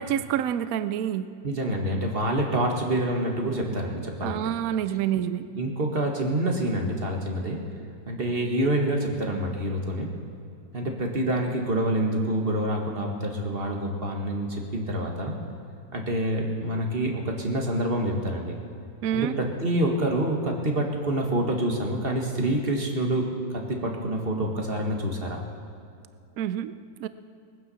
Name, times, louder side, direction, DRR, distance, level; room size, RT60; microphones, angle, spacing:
voice 1, 0.0-1.3 4.2-5.4 19.0-19.4 26.4-26.7 27.0-27.1, right 10 dB, 70° right, 13 dB, 0.8 m, -27 dB
voice 2, 1.4-4.4 5.5-7.6 8.1-10.1 10.7-15.3 15.9-18.5 19.1-25.4, right 1 dB, 30° right, 2 dB, 1.8 m, -27 dB
20.0 x 9.4 x 7.0 m, 2.4 s
omnidirectional pair, 2.1 m